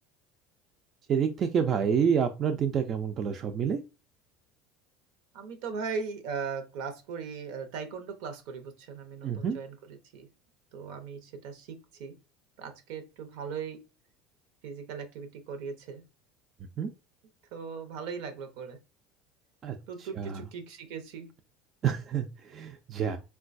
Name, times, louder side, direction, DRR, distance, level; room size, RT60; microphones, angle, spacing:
voice 1, 1.1-3.8 9.2-9.6 16.8-16.9 19.6-19.8 20.2-20.4 21.8-23.2, right 7 dB, 40° right, 6 dB, 0.4 m, -28 dB
voice 2, 5.3-10.3 10.7-12.1 12.6-13.8 14.6-16.0 17.5-18.8 19.9-21.3, right 5 dB, 75° right, 8 dB, 0.7 m, -39 dB
3.8 x 2.2 x 2.5 m, 0.29 s
supercardioid pair, 110°, 0 cm